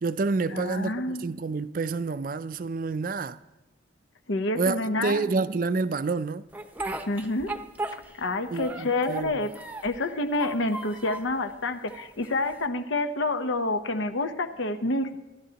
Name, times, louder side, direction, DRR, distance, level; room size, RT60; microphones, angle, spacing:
voice 1, 0.0-3.4 4.6-6.5 8.5-9.4, right 4 dB, 45° right, 0.4 m, -28 dB
voice 2, 0.5-1.3 4.3-5.3 7.1-7.5 7.9-9.5 9.8-15.2, left 2 dB, 85° left, 0.9 m, -28 dB
Speech, 6.5-8.3 8.6-10.0 10.3-11.3 11.9-12.6, right 2 dB, 10° right, 0.7 m, -36 dB
26.0 x 11.0 x 2.9 m
head